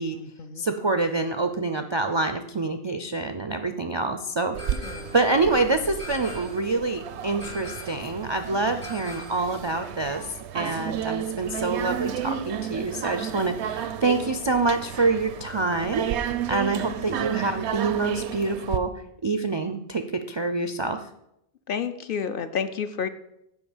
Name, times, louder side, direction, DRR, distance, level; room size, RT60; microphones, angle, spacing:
voice 1, 0.0-0.6 4.8-5.1 16.8-16.9 21.7-23.1, left 7 dB, 60° left, 9 dB, 0.7 m, -31 dB
voice 2, 0.6-18.9 19.2-21.0, right 3 dB, 45° right, 7 dB, 0.3 m, -26 dB
sound 1, 4.5-18.8, right 9 dB, 80° right, 0.8 m, -33 dB
sound 2, 4.6-5.3 6.0-6.7 7.4-8.1 8.8-9.6, left 2 dB, 80° left, 2.6 m, -42 dB
7.0 x 5.1 x 7.1 m, 0.80 s
omnidirectional pair, 1.1 m